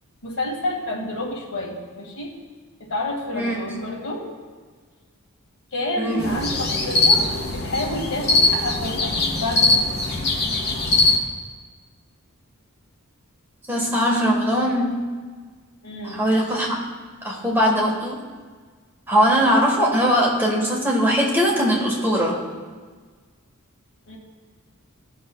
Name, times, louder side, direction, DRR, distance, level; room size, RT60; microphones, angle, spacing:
voice 1, 0.2-2.3 2.8-4.3 5.7-10.1 15.8-16.5 24.1-24.2, left 1 dB, 70° left, -1 dB, 2.0 m, -29 dB
voice 2, 6.0-6.3 13.7-15.0 16.0-16.7 17.2-18.2 19.1-22.4, equal, 10° right, -3 dB, 1.5 m, -20 dB
sound 1, 6.2-11.2, left 2 dB, 50° left, 1.3 m, -21 dB
17.5 x 6.4 x 2.3 m, 1.5 s
head